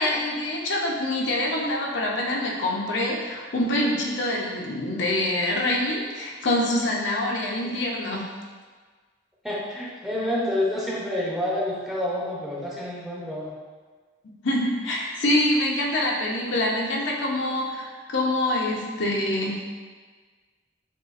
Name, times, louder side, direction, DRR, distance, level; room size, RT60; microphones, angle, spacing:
voice 1, 0.0-8.3 14.4-19.7, left 1 dB, 65° left, -2 dB, 0.7 m, -25 dB
voice 2, 9.4-13.5, left 1 dB, ahead, -5 dB, 0.6 m, -28 dB
6.6 x 2.4 x 2.4 m, 1.5 s
head